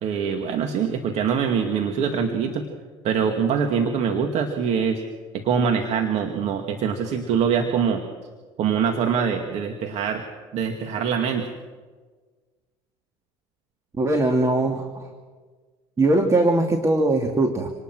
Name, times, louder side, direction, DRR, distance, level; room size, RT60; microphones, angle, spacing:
voice 1, 0.0-2.7 3.0-5.0 5.3-8.0 8.6-10.2 10.5-11.5, right 7 dB, 60° right, 5 dB, 2.2 m, -24 dB
voice 2, 14.0-15.1 16.0-17.7, right 2 dB, 25° right, 5 dB, 2.4 m, -20 dB
27.0 x 19.5 x 6.2 m, 1.4 s
supercardioid pair, 85°, 13 cm